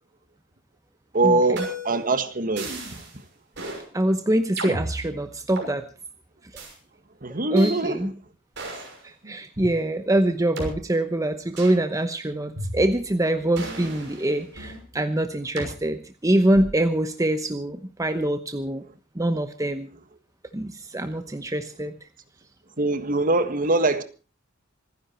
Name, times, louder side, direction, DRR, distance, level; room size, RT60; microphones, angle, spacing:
voice 1, 1.1-3.0 7.2-8.0 9.2-9.3 22.8-24.0, right 2 dB, 45° right, 1.6 m, -23 dB
sound 1, 1.6-2.0 2.6-3.1 3.5-3.8 4.6-5.7 6.5-6.7 7.6-7.7 8.5-9.0 9.6-9.7 10.6-10.7 11.6-11.8 12.6-13.1 13.6-14.8 15.6-15.7 16.5-16.9, right 1 dB, 60° right, 6.3 m, -34 dB
voice 2, 3.9-5.9 6.5-6.6 7.5-8.1 9.0-18.8 19.1-19.9 20.5-22.0, right 1 dB, 15° right, 0.9 m, -24 dB
26.5 x 10.5 x 4.4 m
head